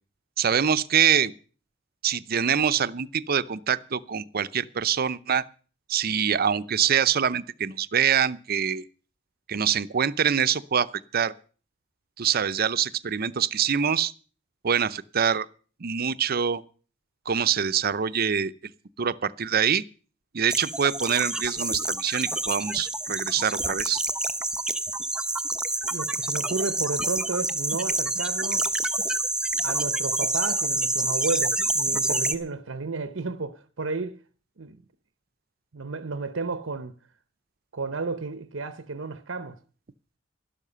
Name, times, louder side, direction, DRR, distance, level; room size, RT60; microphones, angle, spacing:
voice 1, 0.4-1.3 2.0-5.4 5.9-8.8 9.5-11.3 12.2-14.1 14.6-15.5 15.8-16.6 17.3-18.5 19.0-19.8 20.3-24.0, right 8 dB, 50° right, 0.6 m, -25 dB
sound 1, 20.5-32.3, right 2 dB, 5° right, 0.8 m, -27 dB
voice 2, 25.9-28.7 29.6-34.2 34.6-34.8 35.7-36.9 37.7-39.6, right 3 dB, 90° right, 0.8 m, -32 dB
12.5 x 11.5 x 6.8 m
head